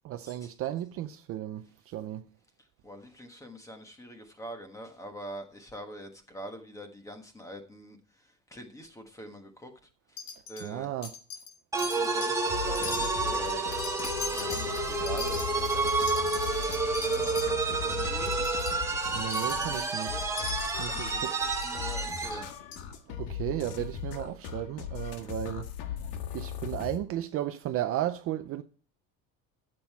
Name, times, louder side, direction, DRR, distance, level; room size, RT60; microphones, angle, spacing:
voice 1, 0.0-2.3 10.6-11.1 19.1-20.2 20.8-21.3 23.2-25.7 26.3-28.6, right 12 dB, 40° right, 0.5 m, -34 dB
voice 2, 2.8-9.7 10.1-10.2 10.5-10.9 11.8-13.6 14.4-18.3 19.6-20.3 20.8-22.5, equal, 10° left, 1.3 m, -45 dB
Wind chime, 10.2-10.7 11.0-11.5 11.8-12.4 12.8-17.5 17.9-18.0 18.3-18.7 19.3-19.7 20.4-20.8 21.5-21.7 22.3-22.4 22.7-22.8, left 6 dB, 70° left, 2.8 m, -40 dB
sound 1, 11.7-22.5, right 3 dB, 10° right, 1.2 m, -30 dB
sound 2, 12.5-27.0, left 8 dB, 90° left, 1.8 m, -38 dB
13.0 x 7.6 x 4.7 m
cardioid pair, 180°, 37 cm